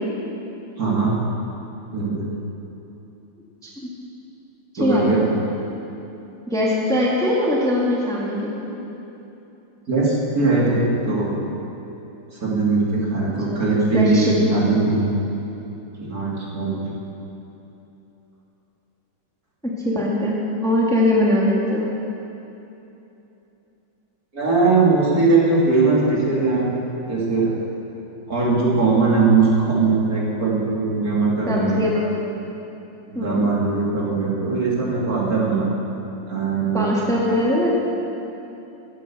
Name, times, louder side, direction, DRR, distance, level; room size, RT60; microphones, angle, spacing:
voice 1, 0.8-1.2 1.9-2.3 4.8-5.3 9.9-11.4 12.4-15.2 16.0-16.9 24.3-26.8 27.1-27.6 28.3-31.8 33.1-35.7 36.3-36.9, right 3 dB, 45° right, -5 dB, 2.8 m, -20 dB
voice 2, 4.7-5.3 6.5-8.7 13.5-13.6 13.9-14.5 19.6-20.4 20.6-21.9 31.5-32.3 33.1-33.5 36.7-37.7, left 1 dB, ahead, -5 dB, 2.0 m, -21 dB
16.0 x 9.4 x 7.0 m, 3.0 s
omnidirectional pair, 2.2 m